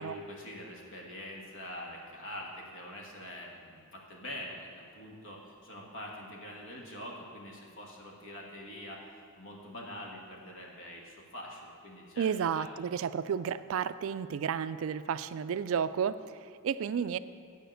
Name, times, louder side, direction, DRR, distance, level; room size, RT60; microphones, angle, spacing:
voice 1, 0.0-9.0 9.3-12.3 12.5-12.6, left 1 dB, 55° left, -1 dB, 1.6 m, -44 dB
voice 2, 12.2-16.2 16.6-17.2, right 7 dB, 60° right, 14 dB, 0.3 m, -32 dB
9.2 x 5.1 x 7.8 m, 2.3 s
head